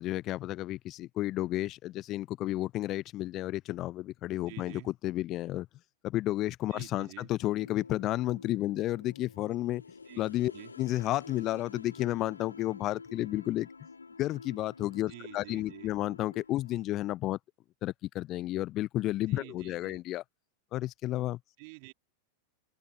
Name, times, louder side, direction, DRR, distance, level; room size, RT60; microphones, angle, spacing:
voice 1, 0.0-5.7 6.0-9.8 10.2-10.5 10.8-13.7 14.2-17.4 17.8-20.2 20.7-21.4, left 15 dB, 35° left, 0.6 m, -32 dB
voice 2, 4.5-4.9 6.7-7.3 10.0-10.7 15.1-16.0 19.3-20.0 21.6-21.9, right 33 dB, 45° right, 3.6 m, -49 dB
Ukelele Drone, 7.4-16.9, left 4 dB, 75° left, 1.0 m, -50 dB
figure-of-eight pair, 90°, 0 cm